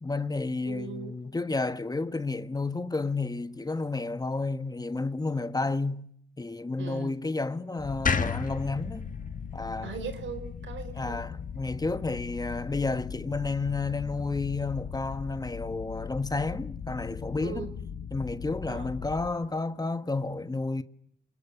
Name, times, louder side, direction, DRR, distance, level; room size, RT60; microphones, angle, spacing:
voice 1, 0.0-6.1 6.4-9.1 9.5-9.9 10.9-17.7 18.1-20.8, left 3 dB, 20° left, 1.2 m, -31 dB
voice 2, 0.6-1.1 6.8-7.2 9.8-11.2 17.4-17.7 18.7-18.9, right 5 dB, 80° right, 4.4 m, -39 dB
sound 1, 7.8-19.3, left 7 dB, 80° left, 2.9 m, -39 dB
sound 2, 8.1-11.2, left 5 dB, 45° left, 1.6 m, -32 dB
27.5 x 21.0 x 9.8 m
cardioid pair, 90°, 20 cm